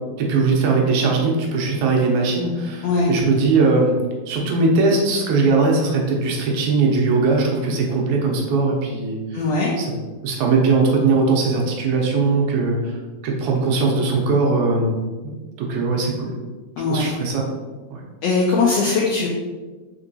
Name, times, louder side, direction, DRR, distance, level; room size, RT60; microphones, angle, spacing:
voice 1, 0.2-4.0 4.2-9.4 9.8-9.9 10.2-12.9 13.2-14.9 15.2-15.3 15.6-16.3 16.9-17.5 17.9-18.0, right 3 dB, 80° right, 0 dB, 2.1 m, -20 dB
voice 2, 9.3-9.7 16.8-17.3 18.2-19.3, left 4 dB, 85° left, -3 dB, 1.4 m, -20 dB
4.5 x 4.0 x 2.6 m, 1.3 s
omnidirectional pair, 3.5 m